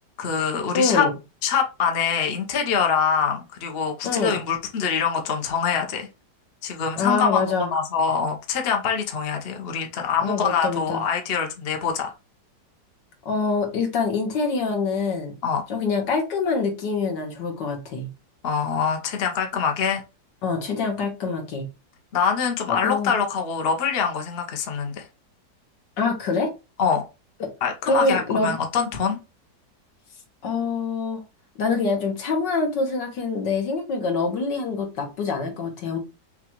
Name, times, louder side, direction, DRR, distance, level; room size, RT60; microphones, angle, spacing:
voice 1, 0.2-1.1 1.4-6.1 6.6-7.4 7.7-12.1 15.4-15.6 18.4-20.0 22.1-25.1 26.8-27.0 27.6-29.2, left 6 dB, 50° left, 0.7 m, -24 dB
voice 2, 0.7-1.1 4.0-4.4 7.0-7.7 10.2-11.0 13.3-15.4 15.7-18.1 20.4-21.7 22.7-23.2 26.0-26.5 27.4-27.5 27.8-28.5 30.4-31.2 31.6-36.0, left 4 dB, 70° left, 1.8 m, -25 dB
5.9 x 2.4 x 3.0 m
omnidirectional pair, 2.0 m